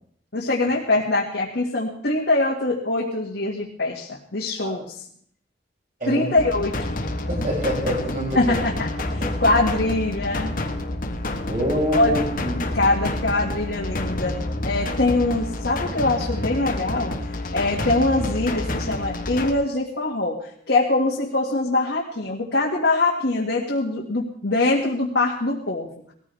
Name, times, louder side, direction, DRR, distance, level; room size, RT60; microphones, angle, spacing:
voice 1, 0.3-4.9 6.1-7.0 8.3-10.5 11.9-12.1 12.7-14.4 14.6-17.2 17.5-25.9, left 2 dB, 80° left, -4 dB, 2.0 m, -23 dB
sound 1, 6.4-19.5, left 1 dB, 55° left, 1.4 m, -28 dB
voice 2, 7.3-8.6 9.2-9.3 11.5-12.7, equal, 50° right, -4 dB, 7.1 m, -26 dB
18.5 x 14.5 x 3.5 m, 0.63 s
head